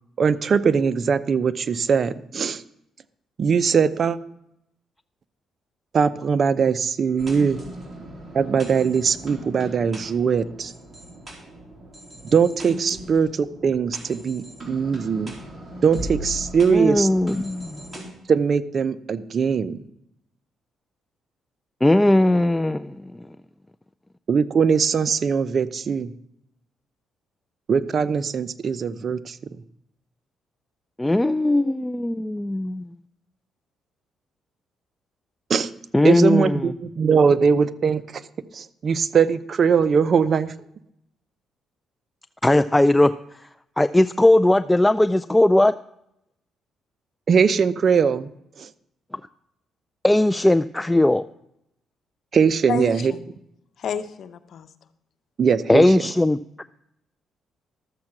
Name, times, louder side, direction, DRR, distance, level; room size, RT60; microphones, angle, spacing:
voice 1, 0.2-2.6 3.4-4.2 5.9-7.6 8.3-10.7 12.2-15.4 15.8-17.1 18.3-19.8 24.3-26.1 27.7-29.4 35.5-35.7 36.0-38.2 38.5-40.5 47.3-48.3 48.6-48.7 52.3-53.1 55.4-55.8, right 6 dB, 50° right, 15 dB, 0.7 m, -21 dB
sound 1, 7.2-18.0, right 1 dB, 25° right, 3.9 m, -38 dB
voice 2, 16.7-17.8 21.8-23.3 31.0-32.9 35.9-36.7 42.4-43.2 43.8-45.7 50.0-51.2 55.7-56.6, left 1 dB, 10° left, 11 dB, 0.3 m, -18 dB
voice 3, 52.7-53.3 53.8-54.7, left 7 dB, 65° left, 12 dB, 0.9 m, -30 dB
13.0 x 7.5 x 6.0 m, 0.78 s
cardioid pair, 90°, 0 cm